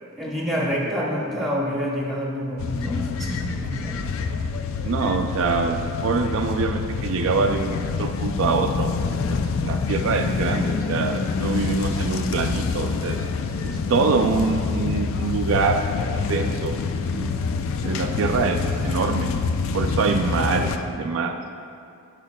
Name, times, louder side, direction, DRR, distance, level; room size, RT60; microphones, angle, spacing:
voice 1, 0.1-4.0, equal, ahead, -5 dB, 1.0 m, -27 dB
sound 1, 2.6-20.8, left 5 dB, 65° left, 0.3 m, -26 dB
voice 2, 4.8-9.0 9.3-13.2 13.6-15.8 16.3-16.7 17.1-17.3 17.8-19.3 19.7-21.4, right 4 dB, 70° right, 5 dB, 0.3 m, -24 dB
11.0 x 5.0 x 2.2 m, 2.4 s
head